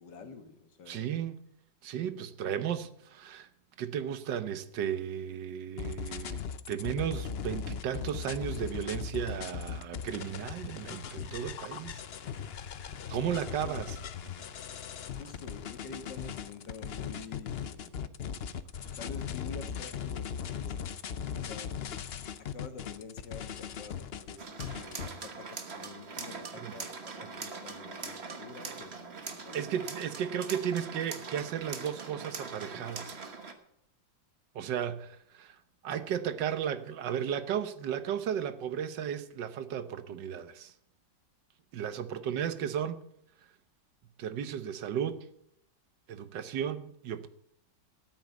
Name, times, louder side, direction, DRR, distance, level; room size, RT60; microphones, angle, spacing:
voice 1, 0.0-1.1 13.3-14.0 15.2-18.1 18.8-20.8 21.3-21.8 22.4-29.8, left 5 dB, 80° left, 2.1 m, -48 dB
voice 2, 0.9-1.4 1.8-3.5 3.8-12.0 12.8-13.9 26.6-26.7 29.5-33.2 34.5-35.6 35.8-40.7 41.7-43.0 44.2-45.2 46.1-47.3, right 9 dB, 80° right, 1.6 m, -34 dB
sound 1, 5.8-25.1, left 7 dB, 55° left, 0.6 m, -39 dB
sound 2, 24.4-33.5, right 4 dB, 40° right, 1.5 m, -42 dB
14.0 x 8.6 x 8.2 m
omnidirectional pair, 1.9 m